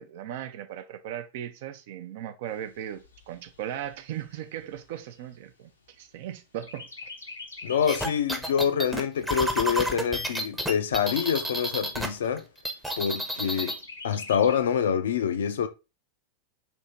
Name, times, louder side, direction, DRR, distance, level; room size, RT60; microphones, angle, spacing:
voice 1, 0.0-5.7 6.0-6.9, right 11 dB, 50° right, 0.5 m, -37 dB
Chirp tweet, 2.5-6.2 6.6-8.3 8.7-8.8 9.2-10.2 10.8-10.9 11.2-11.3 11.7-12.3 13.5-14.6, left 3 dB, 80° left, 0.8 m, -45 dB
voice 2, 7.6-12.4 13.0-13.8 14.0-15.7, left 8 dB, 60° left, 0.5 m, -26 dB
sound 1, 7.9-12.1 12.4-13.8, equal, 5° right, 0.7 m, -30 dB
3.5 x 2.8 x 4.1 m
figure-of-eight pair, 90°, 0 cm